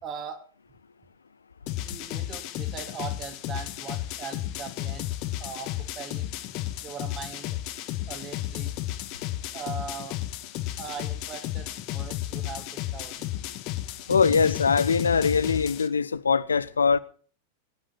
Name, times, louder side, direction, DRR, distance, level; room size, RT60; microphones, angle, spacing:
voice 1, 0.0-0.4 1.8-5.1 5.4-7.6 8.1-8.7 9.5-10.2 10.8-13.3, right 6 dB, 30° right, 3.2 m, -40 dB
sound 1, 1.7-15.9, left 14 dB, 40° left, 1.5 m, -33 dB
voice 2, 14.1-17.0, left 5 dB, 75° left, 0.7 m, -22 dB
20.5 x 10.0 x 4.3 m
figure-of-eight pair, 90°, 0 cm